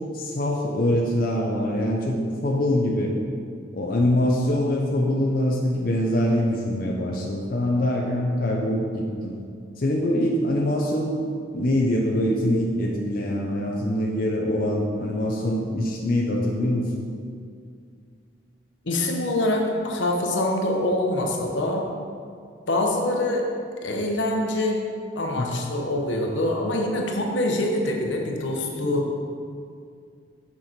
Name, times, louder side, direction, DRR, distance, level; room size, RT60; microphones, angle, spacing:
voice 1, 0.0-3.2 3.7-9.4 9.8-11.2 11.5-16.9 25.4-25.5 28.8-28.9, left 1 dB, 50° left, -2 dB, 0.6 m, -24 dB
voice 2, 18.8-21.8 22.7-23.5 23.8-24.8 25.1-29.1, left 1 dB, 80° left, 1 dB, 1.0 m, -25 dB
6.5 x 6.1 x 4.3 m, 2.3 s
head